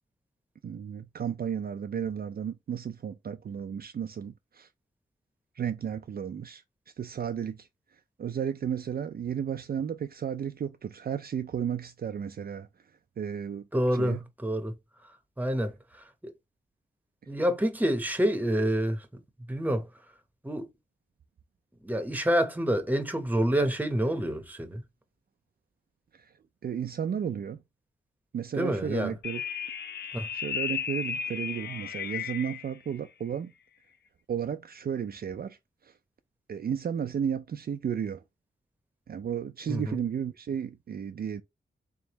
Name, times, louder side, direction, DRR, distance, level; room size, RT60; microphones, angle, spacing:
voice 1, 0.6-4.7 5.6-6.6 7.0-7.7 8.2-12.7 13.2-13.6 13.9-14.2 26.6-27.6 28.3-29.4 30.3-33.5 34.3-35.6 36.5-38.2 39.1-41.4, right 8 dB, 55° right, 0.4 m, -33 dB
voice 2, 13.7-14.7 15.4-15.7 16.2-16.3 17.3-19.1 19.5-19.9 20.4-20.7 21.8-24.8 28.6-29.1 30.1-30.3 39.7-40.0, equal, 10° right, 0.9 m, -27 dB
sound 1, 29.2-32.7, left 7 dB, 60° left, 0.5 m, -34 dB
3.6 x 3.4 x 3.0 m
cardioid pair, 75°, 19 cm